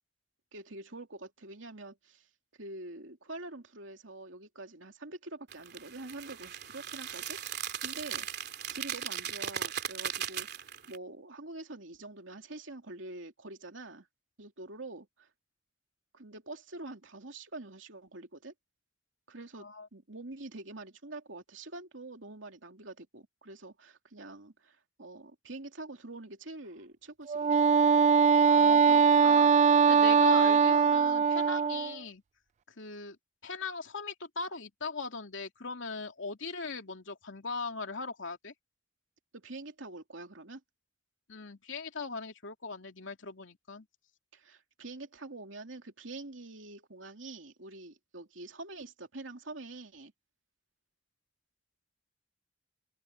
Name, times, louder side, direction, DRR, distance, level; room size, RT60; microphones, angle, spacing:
voice 1, 0.5-2.3 2.6-14.1 14.4-15.3 16.1-18.5 19.3-19.7 19.9-27.5 39.3-40.6 44.3-50.1, right 2 dB, 90° right, 2.7 m, -46 dB
sound 1, 5.5-11.0, right 9 dB, 60° right, 3.3 m, -38 dB
voice 2, 19.6-19.9 28.5-29.5 29.9-32.2 32.8-33.2 33.4-38.5 41.3-43.9, left 4 dB, 85° left, 2.7 m, -39 dB
Wind instrument woodwind instrument, 27.3-32.0, right 6 dB, 40° right, 0.3 m, -22 dB
open air
head